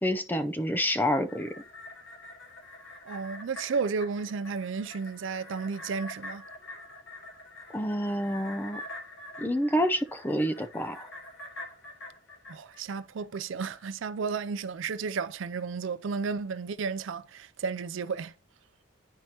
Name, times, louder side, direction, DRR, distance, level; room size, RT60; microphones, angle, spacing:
voice 1, 0.0-1.5 7.7-8.8 9.4-11.1, equal, 10° left, 0.4 m, -28 dB
sound 1, 0.9-13.4 13.8-13.9, left 2 dB, 65° left, 2.1 m, -45 dB
voice 2, 3.1-6.4 12.5-18.3, right 5 dB, 70° right, 0.4 m, -33 dB
10.5 x 4.5 x 2.8 m
head